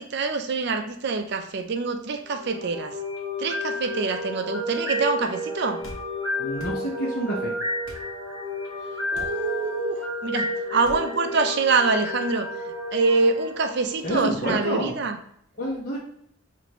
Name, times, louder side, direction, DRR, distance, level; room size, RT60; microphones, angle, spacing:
voice 1, 0.0-2.9 3.4-5.8 9.1-12.5 12.9-15.1, right 4 dB, 50° right, 6 dB, 0.4 m, -25 dB
sound 1, 2.3-14.4, left 1 dB, 20° right, 1.4 m, -31 dB
sound 2, 5.8-6.1 6.6-6.8 7.8-8.1 9.1-9.4 10.8-11.0, equal, 75° left, 0.8 m, -40 dB
voice 2, 6.4-7.5 14.0-15.0 15.6-16.0, equal, 45° left, -6 dB, 0.9 m, -28 dB
4.9 x 2.5 x 2.9 m, 0.69 s
head